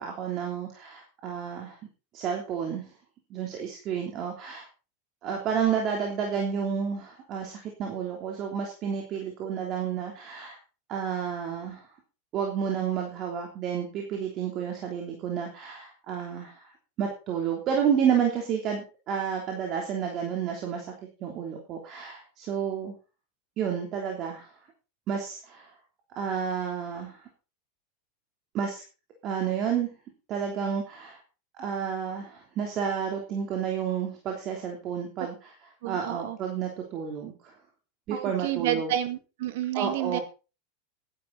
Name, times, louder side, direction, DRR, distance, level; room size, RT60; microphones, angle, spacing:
voice 1, 0.0-1.8 2.1-2.8 3.3-4.7 5.2-10.6 10.9-11.9 12.3-16.7 17.0-20.9 21.2-22.9 23.6-24.5 25.1-25.7 26.1-27.2 28.5-28.8 29.2-29.9 30.3-31.2 31.6-35.5 35.8-37.5 38.1-38.9 39.7-40.2, right 7 dB, 40° right, 1 dB, 3.3 m, -30 dB
voice 2, 35.8-36.4 38.1-40.2, right 11 dB, 70° right, 10 dB, 2.0 m, -30 dB
15.0 x 11.0 x 4.1 m, 0.33 s
supercardioid pair, 140°, 0 cm